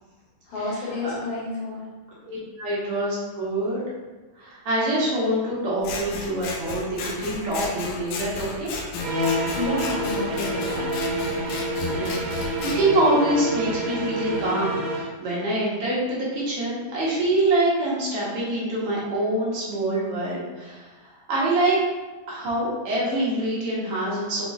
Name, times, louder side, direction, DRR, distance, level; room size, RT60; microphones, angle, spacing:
voice 1, 0.5-1.8 9.5-10.9, left 2 dB, 65° left, -7 dB, 2.4 m, -30 dB
voice 2, 2.2-3.9 4.4-8.7 11.9-20.9 21.3-21.8 22.3-24.5, right 1 dB, 60° right, -7 dB, 1.7 m, -25 dB
Scissors, 5.8-12.8, left 4 dB, 90° left, 2.3 m, -34 dB
sound 1, 9.0-15.1, right 1 dB, 75° right, 2.2 m, -27 dB
5.7 x 3.7 x 2.4 m, 1.2 s
omnidirectional pair, 3.8 m